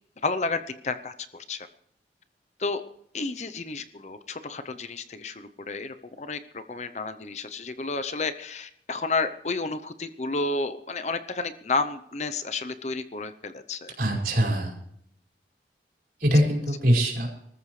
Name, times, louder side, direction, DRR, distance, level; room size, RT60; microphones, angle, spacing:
voice 1, 0.2-1.7 2.6-2.8 3.1-13.9, left 3 dB, 40° left, 10 dB, 0.7 m, -31 dB
voice 2, 14.0-14.7 16.2-17.3, equal, 55° right, 0 dB, 5.2 m, -22 dB
24.5 x 14.0 x 3.2 m, 0.72 s
head